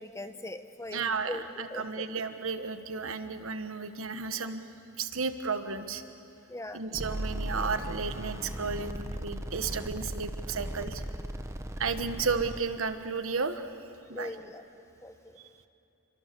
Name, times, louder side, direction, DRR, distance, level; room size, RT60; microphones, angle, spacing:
voice 1, 0.0-1.4 1.7-2.1 6.5-6.8 14.1-14.6 15.0-15.4, left 1 dB, 15° left, 8 dB, 1.0 m, -40 dB
voice 2, 0.9-4.6 5.0-6.0 6.7-11.0 11.8-13.7 14.1-14.3, right 5 dB, 85° right, 9 dB, 1.3 m, -33 dB
sound 1, 6.9-12.6, right 1 dB, 15° right, 0.9 m, -37 dB
29.0 x 24.0 x 6.9 m, 2.7 s
head